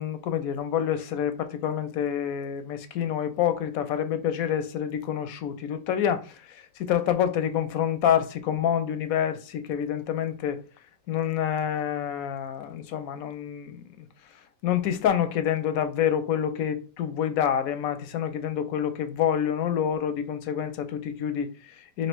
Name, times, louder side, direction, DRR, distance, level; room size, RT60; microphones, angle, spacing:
voice 1, 0.0-10.6 11.1-14.1 14.6-22.1, left 9 dB, 70° left, 0.9 m, -27 dB
3.2 x 2.7 x 4.4 m
omnidirectional pair, 1.8 m